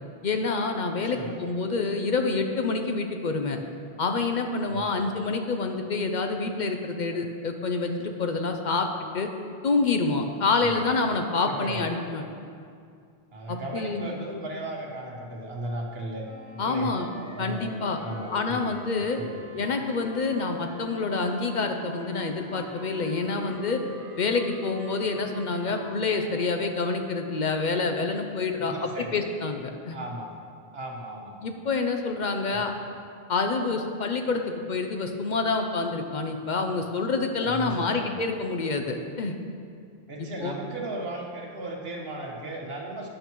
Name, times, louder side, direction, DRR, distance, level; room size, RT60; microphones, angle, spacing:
voice 1, 0.2-3.6 4.0-8.9 9.1-9.3 9.6-12.3 13.5-14.0 16.6-17.1 17.4-18.0 18.3-19.2 19.5-23.8 24.2-30.0 31.4-32.7 33.3-39.3 40.2-40.5, left 3 dB, 55° left, 5 dB, 0.7 m, -27 dB
voice 2, 1.0-1.3 4.7-5.0 10.5-10.9 11.4-11.9 13.3-16.2 16.5-17.0 17.3-18.7 19.1-19.4 28.5-29.2 29.9-30.4 30.7-31.4 32.5-32.6 37.4-38.1 40.1-43.1, right 1 dB, 75° right, 0 dB, 1.4 m, -36 dB
sound 1, 16.3-26.3, equal, 15° left, 1.9 m, -45 dB
11.5 x 8.9 x 3.0 m, 2.3 s
omnidirectional pair, 1.0 m